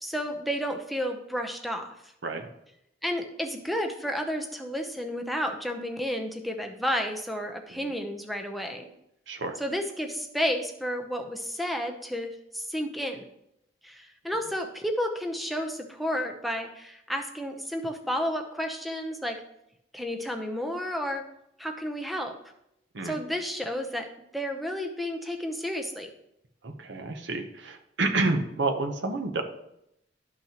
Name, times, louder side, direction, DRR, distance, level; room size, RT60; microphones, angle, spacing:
voice 1, 0.0-2.1 3.0-8.9 9.6-13.2 13.8-19.4 19.9-21.2 21.6-22.3 23.0-24.1 24.3-26.1, equal, ahead, 3 dB, 0.7 m, -31 dB
voice 2, 9.3-9.6 22.9-23.2 26.6-29.4, right 3 dB, 65° right, 5 dB, 0.9 m, -29 dB
12.0 x 5.8 x 2.9 m, 0.79 s
head